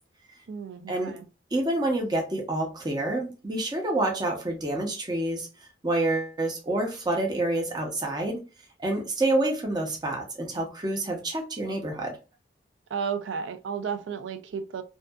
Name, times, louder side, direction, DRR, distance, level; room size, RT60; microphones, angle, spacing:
voice 1, 0.5-1.2 12.9-14.8, right 6 dB, 80° right, 0.4 m, -33 dB
voice 2, 1.5-5.5 5.8-8.4 8.8-12.1, right 2 dB, 20° right, 0.6 m, -28 dB
2.6 x 2.3 x 2.2 m
head